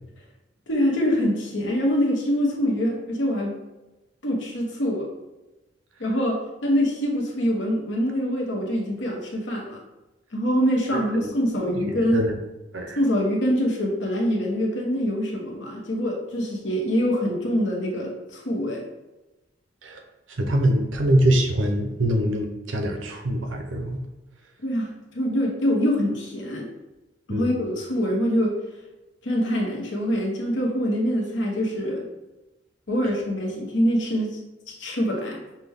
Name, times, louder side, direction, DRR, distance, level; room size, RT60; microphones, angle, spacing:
voice 1, 0.7-3.5 4.2-5.1 6.0-9.8 10.3-12.2 13.0-18.8 24.6-26.7 27.3-28.6 29.2-32.0 32.9-34.4 34.8-35.4, equal, 75° left, -1 dB, 1.0 m, -24 dB
voice 2, 10.9-11.3 11.6-12.4 12.7-13.0 19.8-20.0 20.3-24.0 27.3-27.5, right 1 dB, 85° right, 4 dB, 0.7 m, -24 dB
5.8 x 2.2 x 3.4 m, 1.0 s
head